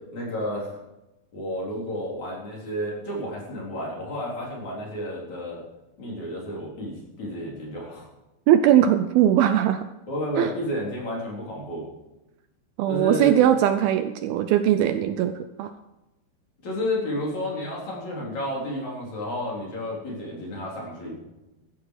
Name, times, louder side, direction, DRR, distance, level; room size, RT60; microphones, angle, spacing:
voice 1, 0.1-0.8 1.3-5.6 6.0-8.1 10.1-11.8 12.9-13.3 16.6-21.2, left 1 dB, 45° left, -3 dB, 4.9 m, -31 dB
voice 2, 8.5-9.9 10.4-10.5 12.8-15.7, right 11 dB, 80° right, 10 dB, 2.3 m, -20 dB
14.5 x 13.0 x 4.8 m, 0.98 s
omnidirectional pair, 4.7 m